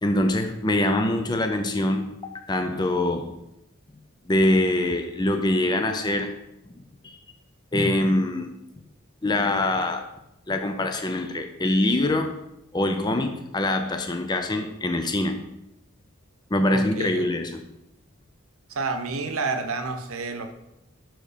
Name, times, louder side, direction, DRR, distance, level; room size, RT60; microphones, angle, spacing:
voice 1, 0.0-3.3 4.3-6.3 7.0-7.2 7.7-8.5 9.2-10.1 10.5-12.3 12.7-15.4 16.5-17.6, left 1 dB, 20° left, 6 dB, 0.5 m, -24 dB
voice 2, 16.7-17.2 18.7-20.5, right 3 dB, 75° right, 7 dB, 0.8 m, -29 dB
6.0 x 4.6 x 5.0 m, 0.85 s
head